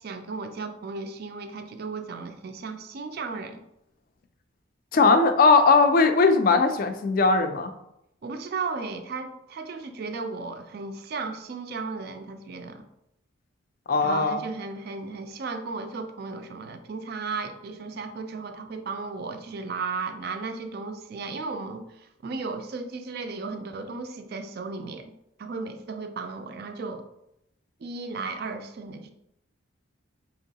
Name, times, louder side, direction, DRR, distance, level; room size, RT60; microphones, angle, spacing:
voice 1, 0.0-3.6 8.2-12.8 14.0-25.1 25.4-27.0 27.8-29.1, right 4 dB, 50° right, 8 dB, 0.3 m, -35 dB
voice 2, 4.9-7.7 13.9-14.4, left 4 dB, 45° left, 8 dB, 0.3 m, -19 dB
4.5 x 3.0 x 2.7 m, 0.82 s
head